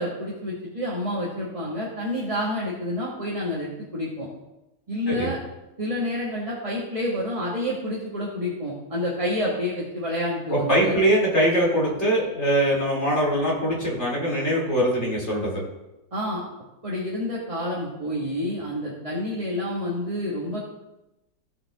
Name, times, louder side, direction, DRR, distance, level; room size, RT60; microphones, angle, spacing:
voice 1, 0.0-4.3 4.9-5.4 5.8-11.0 16.1-16.4 16.8-20.6, left 1 dB, 20° right, -5 dB, 1.5 m, -28 dB
voice 2, 10.5-15.6, right 1 dB, 35° left, -3 dB, 3.0 m, -22 dB
15.5 x 6.7 x 3.6 m, 0.96 s
omnidirectional pair, 1.9 m